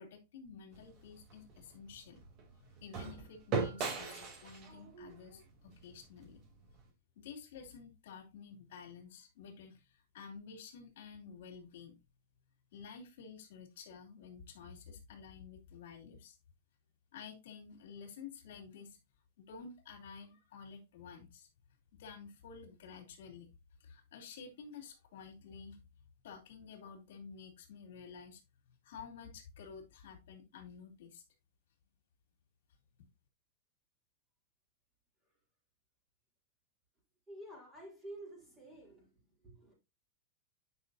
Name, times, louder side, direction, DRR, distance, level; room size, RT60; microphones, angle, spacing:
voice 1, 0.0-2.2 2.6-6.4 7.2-11.9 12.7-16.4 17.1-19.0 19.4-21.5 22.0-23.5 23.8-25.8 26.2-28.4 28.8-31.2 33.0-33.1, left 6 dB, 75° left, 2.7 m, -51 dB
sound 1, 0.7-6.9, right 5 dB, 35° right, 2.9 m, -41 dB
voice 2, 37.3-39.1 39.4-39.7, right 1 dB, 10° right, 4.1 m, -50 dB
9.6 x 5.7 x 2.7 m
supercardioid pair, 160°, 0 cm